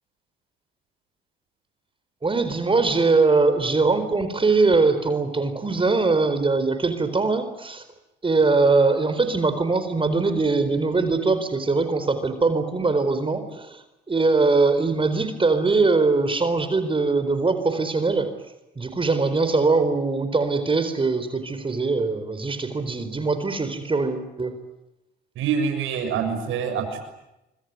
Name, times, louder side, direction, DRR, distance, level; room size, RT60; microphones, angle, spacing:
voice 1, 2.2-7.8 8.2-18.3 18.8-24.5, right 3 dB, 25° right, 10 dB, 4.3 m, -22 dB
voice 2, 25.3-27.0, right 6 dB, 85° right, 6 dB, 6.8 m, -25 dB
26.0 x 24.5 x 9.5 m, 0.91 s
cardioid pair, 90°, 20 cm